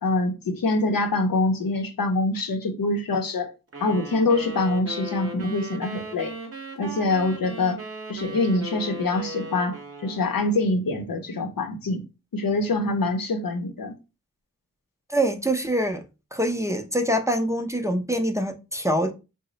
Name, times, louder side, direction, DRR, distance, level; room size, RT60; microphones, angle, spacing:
voice 1, 0.0-3.5 3.8-6.3 6.8-7.8 8.1-12.0 12.3-13.9, left 2 dB, 90° left, 0.6 m, -25 dB
sound 1, 3.7-10.7, right 2 dB, 45° right, 0.7 m, -37 dB
voice 2, 15.1-16.0 16.3-19.1, right 1 dB, 10° right, 0.4 m, -24 dB
3.0 x 2.1 x 3.8 m
wide cardioid pair, 50°, 33 cm